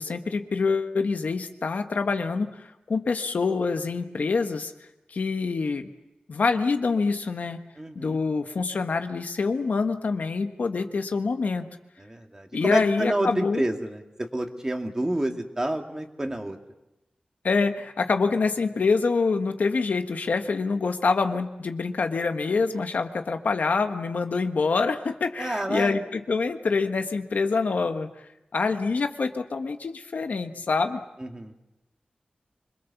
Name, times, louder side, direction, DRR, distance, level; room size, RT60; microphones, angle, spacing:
voice 1, 0.0-4.7 5.1-5.9 6.3-7.6 7.9-11.7 12.5-13.7 17.4-28.1 28.5-31.0, left 4 dB, 85° left, 6 dB, 1.4 m, -26 dB
voice 2, 7.8-8.2 12.0-16.6 25.4-26.0 31.2-31.5, right 1 dB, 25° right, 4 dB, 2.2 m, -29 dB
26.0 x 21.5 x 7.1 m, 0.93 s
wide cardioid pair, 90°, 3 cm